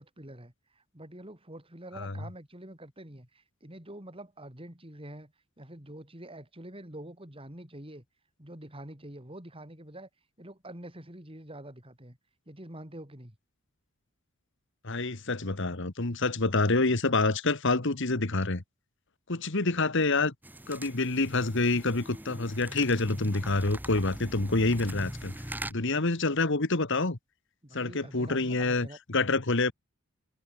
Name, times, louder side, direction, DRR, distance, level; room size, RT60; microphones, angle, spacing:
voice 1, 0.0-8.0 8.4-10.1 10.4-12.2 12.5-13.4 27.6-29.0, right 1 dB, 25° right, 4.1 m, -46 dB
voice 2, 14.8-18.6 19.3-20.3 20.7-25.3 25.7-27.2 27.7-29.7, left 3 dB, 60° left, 1.7 m, -27 dB
sound 1, 20.4-25.7, right 1 dB, 10° right, 2.1 m, -42 dB
head